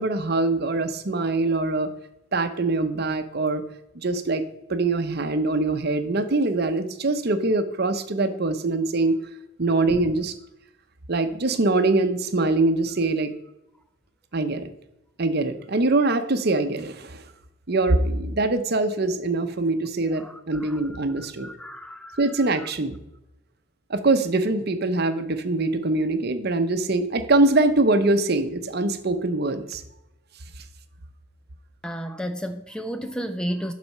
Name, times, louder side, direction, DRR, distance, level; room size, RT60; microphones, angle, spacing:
voice 1, 0.0-1.9 2.3-3.6 3.9-4.4 4.7-9.2 9.6-10.3 11.1-13.3 14.3-14.7 15.2-17.2 17.7-21.5 22.2-22.9 23.9-29.8, right 2 dB, 50° right, 0.8 m, -23 dB
voice 2, 20.1-22.7 31.8-33.7, equal, 5° left, 0.4 m, -33 dB
11.5 x 4.2 x 5.5 m
head